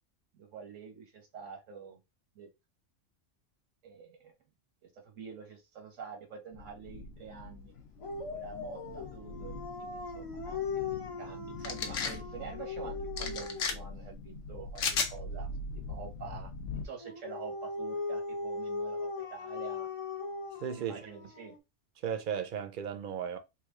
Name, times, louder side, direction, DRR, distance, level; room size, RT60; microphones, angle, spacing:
voice 1, 0.3-2.0 2.3-2.5 3.8-4.3 4.8-7.7 8.3-15.5 15.9-19.9 20.8-21.5, right 6 dB, 90° right, 1.5 m, -47 dB
sound 1, 6.5-16.9, left 2 dB, 65° left, 0.9 m, -44 dB
Dog, 8.0-13.8 17.0-21.6, left 4 dB, 45° left, 0.4 m, -39 dB
sound 2, 11.6-12.2 13.2-13.7 14.8-15.1, left 6 dB, 85° left, 1.1 m, -32 dB
voice 2, 20.6-21.1 22.0-23.4, right 8 dB, 55° right, 0.6 m, -35 dB
3.3 x 2.4 x 3.5 m
omnidirectional pair, 1.3 m